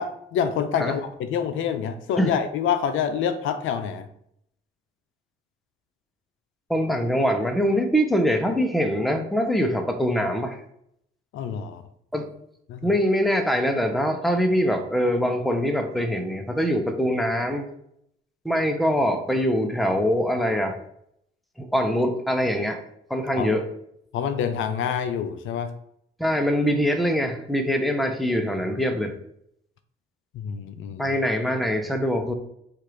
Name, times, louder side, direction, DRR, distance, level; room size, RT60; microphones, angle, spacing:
voice 1, 0.0-4.1 11.3-11.8 12.7-12.9 23.4-23.5 24.1-25.7 30.3-31.1, left 7 dB, 80° left, 10 dB, 0.5 m, -27 dB
voice 2, 6.7-10.6 12.1-12.3 12.8-17.7 18.4-20.7 21.6-22.8 23.1-23.6 26.2-29.1 31.0-32.3, equal, ahead, 5 dB, 0.6 m, -23 dB
4.4 x 2.5 x 4.9 m, 0.73 s
cardioid pair, 90°, 20 cm